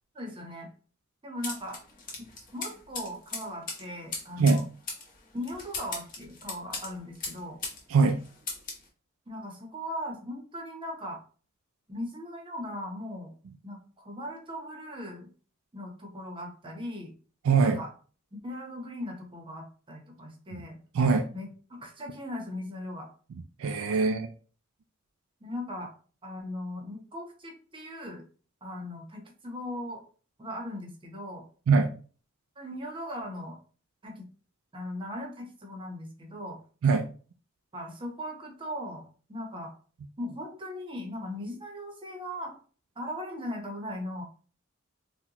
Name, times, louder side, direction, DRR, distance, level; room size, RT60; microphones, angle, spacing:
voice 1, 0.1-0.7 1.2-1.8 2.2-4.7 5.3-7.6 9.3-11.2 11.9-13.3 13.6-15.3 15.7-17.1 17.6-17.9 18.3-20.8 21.3-23.1 25.4-25.9 26.2-28.2 28.6-30.0 30.4-31.4 32.6-33.6 34.0-34.2 34.7-36.6 37.7-39.7 40.2-42.6 43.0-44.2, left 1 dB, 25° right, 1 dB, 0.8 m, -38 dB
sound 1, 1.4-7.8 8.1-8.8, left 3 dB, 40° left, 0.9 m, -38 dB
voice 2, 17.4-17.8 20.5-20.6 20.9-21.3 23.6-24.3 31.7-31.9 36.8-37.1, right 4 dB, 75° right, 7 dB, 0.4 m, -22 dB
3.8 x 2.2 x 2.9 m, 0.40 s
head